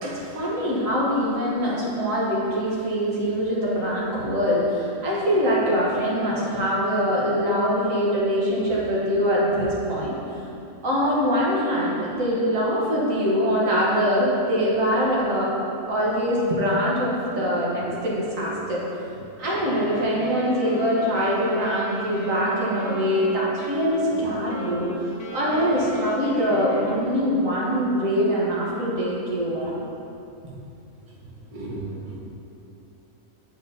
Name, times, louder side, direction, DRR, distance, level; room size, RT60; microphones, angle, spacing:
voice 1, 0.0-10.1 10.8-15.5 15.9-18.8 19.4-24.9 25.3-29.7, equal, 75° right, -6 dB, 1.5 m, -23 dB
Wind instrument woodwind instrument, 19.4-27.4, left 1 dB, 65° left, 1.1 m, -37 dB
voice 2, 31.5-32.2, right 2 dB, 30° right, -6 dB, 1.0 m, -34 dB
8.9 x 4.4 x 2.7 m, 2.7 s
omnidirectional pair, 1.4 m